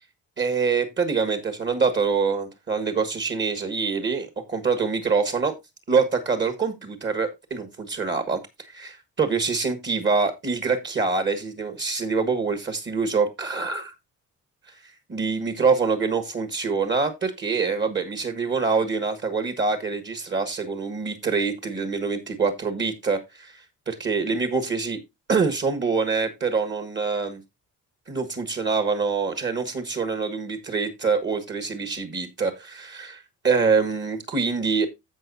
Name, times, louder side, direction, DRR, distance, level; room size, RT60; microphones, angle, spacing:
voice 1, 0.4-5.5 5.9-8.4 8.7-13.9 15.1-25.0 25.3-27.4 28.1-34.9, right 4 dB, 35° right, 8 dB, 1.5 m, -25 dB
15.5 x 5.3 x 2.6 m, 0.22 s
cardioid pair, 145°, 34 cm